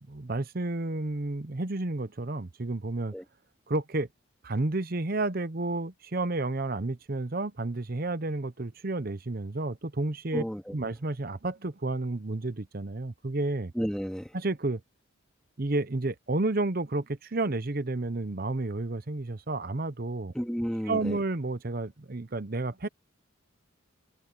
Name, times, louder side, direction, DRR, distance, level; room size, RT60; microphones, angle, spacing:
voice 1, 0.0-3.1 3.7-4.1 4.4-10.4 10.7-13.7 14.3-14.8 15.6-20.3 20.9-22.9, right 2 dB, 45° right, 0.8 m, -31 dB
voice 2, 10.3-10.8 13.7-14.4 20.3-21.2, equal, 5° left, 2.4 m, -32 dB
head